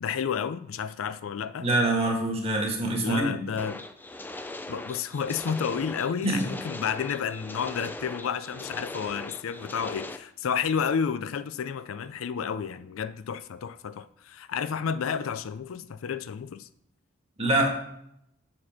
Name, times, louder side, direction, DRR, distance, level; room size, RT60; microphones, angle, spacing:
voice 1, 0.0-1.7 3.0-3.8 4.7-16.7, left 7 dB, 90° left, 0.4 m, -31 dB
voice 2, 1.6-3.4 6.2-6.4 17.4-17.7, right 2 dB, 30° right, 1.6 m, -25 dB
sound 1, 3.6-10.2, left 2 dB, 10° left, 0.4 m, -40 dB
7.7 x 4.1 x 5.8 m
head